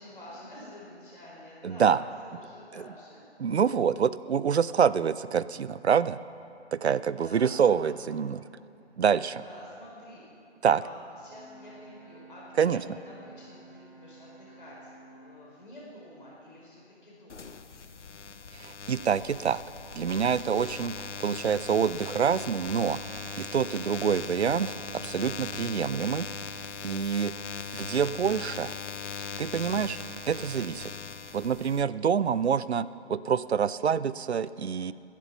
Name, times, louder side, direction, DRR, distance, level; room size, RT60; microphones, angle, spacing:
voice 1, 0.0-3.2 7.2-8.2 9.4-10.2 10.8-10.9 11.2-17.5, left 1 dB, 45° left, -5 dB, 4.3 m, -48 dB
voice 2, 1.6-2.0 2.7-2.9 3.4-6.2 6.7-8.4 9.0-9.4 10.6-10.8 12.6-12.8 18.5-19.6 19.9-23.0 23.4-26.3 26.8-27.4 27.7-28.7 29.2-30.0 30.3-30.9 31.3-34.9, right 7 dB, 65° right, 17 dB, 0.5 m, -26 dB
Brass instrument, 11.2-15.5, right 2 dB, 35° right, 1.6 m, -52 dB
sound 1, 17.3-31.8, left 5 dB, 90° left, 0.8 m, -39 dB
15.5 x 10.5 x 5.9 m, 2.5 s
figure-of-eight pair, 180°, 35 cm